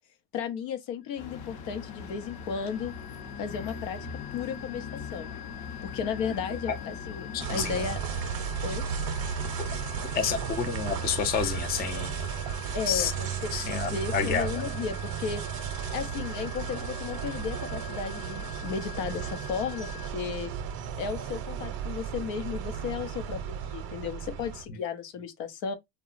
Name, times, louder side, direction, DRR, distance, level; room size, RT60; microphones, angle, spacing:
voice 1, 0.3-2.9 3.4-4.0 4.3-5.3 5.8-8.0 8.6-8.8 12.7-15.4 15.9-20.5 21.0-25.7, left 6 dB, 85° left, 0.7 m, -34 dB
sound 1, 1.0-20.1, left 9 dB, 70° left, 1.0 m, -46 dB
sound 2, 1.2-7.5, left 5 dB, 55° left, 0.8 m, -40 dB
voice 2, 7.3-7.9 10.1-12.2 12.9-13.1 13.5-14.5, left 7 dB, 25° left, 0.3 m, -29 dB
sound 3, 7.4-24.6, right 7 dB, 50° right, 0.6 m, -34 dB
2.9 x 2.2 x 2.4 m
cardioid pair, 125°, 48 cm